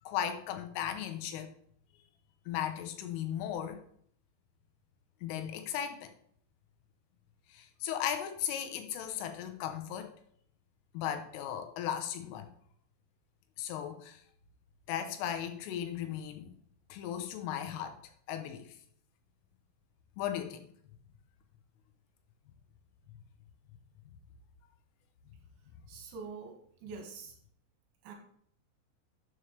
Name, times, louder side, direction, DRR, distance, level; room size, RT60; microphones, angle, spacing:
voice 1, 0.1-1.5 2.5-3.8 5.2-6.1 7.5-10.1 11.0-12.5 13.6-14.2 14.9-16.6 16.9-18.0 18.3-18.6 20.2-20.7, left 10 dB, 80° left, 7 dB, 3.5 m, -36 dB
voice 2, 25.9-27.4 28.0-28.1, right 5 dB, 70° right, 2 dB, 3.8 m, -45 dB
12.5 x 7.3 x 3.3 m, 0.63 s
omnidirectional pair, 5.8 m